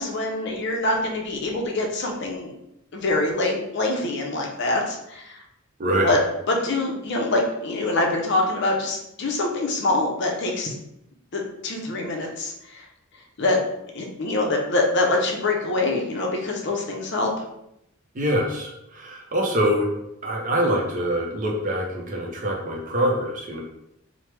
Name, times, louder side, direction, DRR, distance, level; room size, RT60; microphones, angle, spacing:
voice 1, 0.0-2.5 2.9-5.4 6.0-6.2 6.5-10.7 11.3-12.9 13.4-13.6 13.9-17.3, left 2 dB, 55° left, 1 dB, 0.6 m, -24 dB
voice 2, 5.8-6.1 18.1-19.9 20.2-23.6, equal, 40° right, 0 dB, 0.6 m, -24 dB
3.1 x 2.1 x 3.2 m, 0.81 s
head